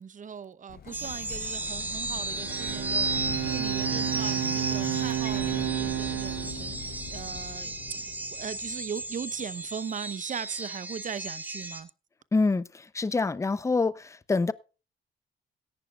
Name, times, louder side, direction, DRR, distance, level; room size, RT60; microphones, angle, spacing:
voice 1, 0.0-11.9, right 7 dB, 40° right, 0.8 m, -39 dB
Explosion, 0.7-9.4, left 9 dB, 50° left, 0.7 m, -42 dB
sound 1, 0.9-11.8, right 2 dB, 10° right, 2.1 m, -34 dB
Bowed string instrument, 2.2-7.6, right 15 dB, 85° right, 0.8 m, -32 dB
voice 2, 12.3-14.5, left 3 dB, 15° left, 0.6 m, -26 dB
17.0 x 11.5 x 2.4 m
cardioid pair, 90°, 20 cm